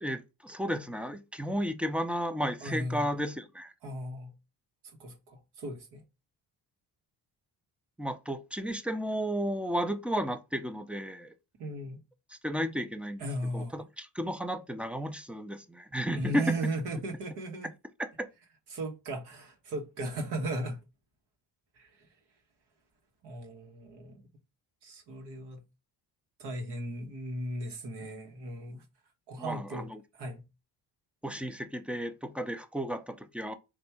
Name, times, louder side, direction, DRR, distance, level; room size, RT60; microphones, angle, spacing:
voice 1, 0.0-3.7 8.0-11.3 12.3-13.2 13.5-16.5 18.0-18.3 29.4-30.0 31.2-33.5, equal, 5° right, 0.4 m, -33 dB
voice 2, 2.6-3.1 3.8-4.3 5.0-6.0 11.6-12.0 13.2-13.8 16.1-17.7 18.7-20.8 21.8-21.9 23.2-24.2 24.8-25.6 26.4-28.8 29.3-29.9 30.1-30.4, right 1 dB, 75° right, 1.3 m, -36 dB
3.5 x 2.6 x 4.2 m
cardioid pair, 90°, 40 cm